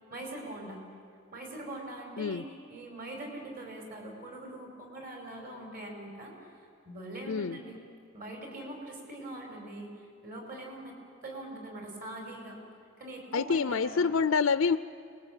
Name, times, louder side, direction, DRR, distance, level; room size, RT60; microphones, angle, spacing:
voice 1, 0.1-0.8 1.3-2.4 2.7-6.3 6.8-7.8 8.1-9.9 10.2-10.9 11.2-12.6 13.0-14.1, right 1 dB, 45° right, 1 dB, 5.4 m, -42 dB
voice 2, 7.3-7.6 13.3-14.8, left 5 dB, 75° left, 13 dB, 0.5 m, -27 dB
27.0 x 21.5 x 8.9 m, 2.5 s
head